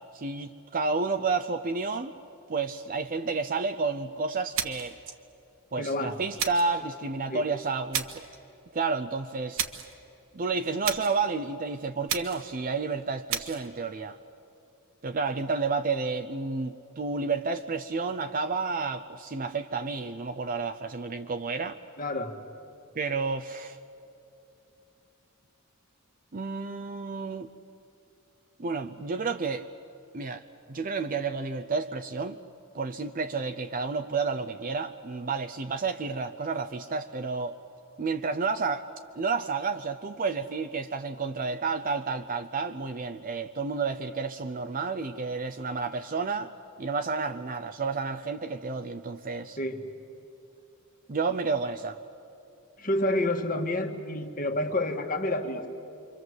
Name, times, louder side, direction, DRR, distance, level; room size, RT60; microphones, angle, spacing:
voice 1, 0.1-2.1 2.5-4.9 5.7-8.2 8.7-9.6 10.3-14.2 15.0-21.8 23.0-23.8 26.3-27.5 28.6-29.7 30.1-30.4 30.7-32.4 32.7-37.6 38.0-38.9 39.2-46.5 46.8-49.6 51.1-52.0, right 4 dB, 40° right, 7 dB, 0.6 m, -30 dB
sound 1, 4.5-5.0 6.4-6.8 7.9-8.3 9.6-9.9 10.8-11.2 12.1-12.5 13.3-13.7, right 8 dB, 65° right, 1.3 m, -32 dB
voice 2, 5.8-6.1 7.3-7.4 22.0-22.3 49.6-49.8 52.8-55.7, left 1 dB, 40° left, 5 dB, 1.8 m, -29 dB
27.5 x 24.5 x 8.0 m, 2.8 s
head